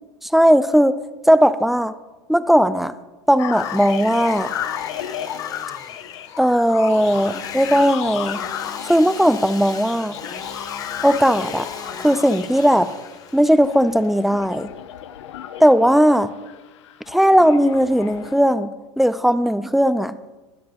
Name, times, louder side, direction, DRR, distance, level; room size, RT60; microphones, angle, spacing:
voice 1, 0.2-1.0 1.3-1.9 2.3-2.9 3.3-4.5 6.4-8.4 8.8-10.1 11.0-11.7 12.0-12.9 13.3-14.7 15.6-16.3 17.1-18.7 19.0-20.1, equal, ahead, 14 dB, 0.5 m, -17 dB
Engine / Sawing, 3.3-15.0, left 4 dB, 25° left, 1.1 m, -38 dB
sound 1, 3.4-18.4, left 11 dB, 75° left, 0.6 m, -33 dB
16.5 x 10.0 x 2.9 m, 1.2 s
hypercardioid pair, 90°, 15 cm